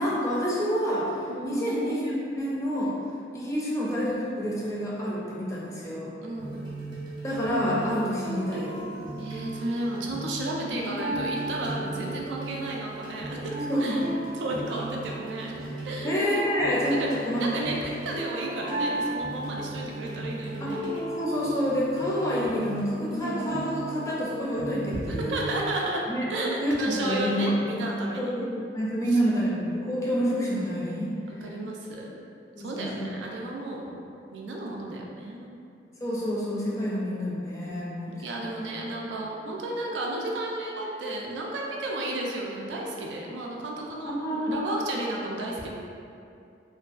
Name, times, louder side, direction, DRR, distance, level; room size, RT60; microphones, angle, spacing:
voice 1, 0.0-1.1 1.4-2.9 3.3-6.1 7.2-8.9 13.7-14.2 16.0-17.0 17.2-17.5 20.6-20.7 21.1-25.4 26.1-26.3 26.6-27.8 28.1-31.2 32.6-33.1 36.0-38.2 38.5-38.7 44.2-44.5, equal, 15° left, -6 dB, 0.4 m, -28 dB
voice 2, 1.3-1.7 6.2-6.7 9.2-13.4 13.8-14.0 14.4-15.6 15.8-16.1 16.9-17.1 17.4-20.8 24.9-26.0 26.3-28.5 31.4-32.1 32.6-35.5 37.7-45.7, right 1 dB, 80° right, -2 dB, 0.4 m, -33 dB
sound 1, 6.4-25.7, right 2 dB, 25° right, 0.6 m, -35 dB
2.5 x 2.2 x 2.4 m, 2.5 s
head